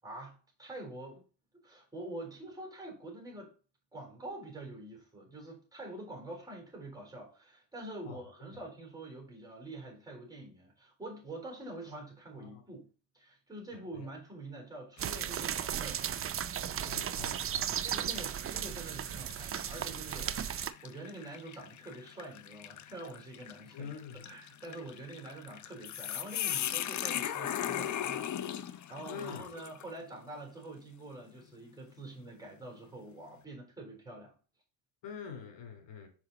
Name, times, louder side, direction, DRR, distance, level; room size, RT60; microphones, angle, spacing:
voice 1, 0.0-1.2 1.6-3.5 3.9-12.9 13.1-16.0 17.8-34.3, right 2 dB, 10° right, 3.5 m, -46 dB
voice 2, 8.0-8.6 12.4-12.6 13.9-14.1 16.8-17.7 23.7-24.3 29.1-29.5 35.0-36.1, left 7 dB, 70° left, 2.9 m, -45 dB
sound 1, 15.0-15.5 16.0-16.1 17.1-17.3 17.9-29.9, left 10 dB, 40° left, 0.5 m, -39 dB
sound 2, 15.0-20.7, right 9 dB, 35° right, 0.4 m, -35 dB
5.6 x 4.9 x 3.9 m
cardioid pair, 100°, 45 cm